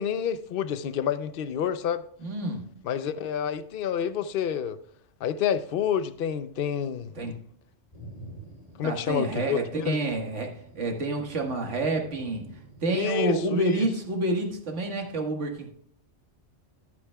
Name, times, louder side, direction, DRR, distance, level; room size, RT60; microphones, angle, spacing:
voice 1, 0.0-2.0 2.8-4.8 5.2-7.3 8.8-10.0 12.9-13.9, left 8 dB, 55° left, 0.7 m, -29 dB
voice 2, 2.2-2.8 7.2-7.4 8.8-12.5 12.8-15.7, right 2 dB, 65° right, 1.8 m, -28 dB
Thunder, 7.9-15.1, right 1 dB, 30° left, 2.6 m, -49 dB
13.5 x 8.6 x 2.3 m
omnidirectional pair, 1.3 m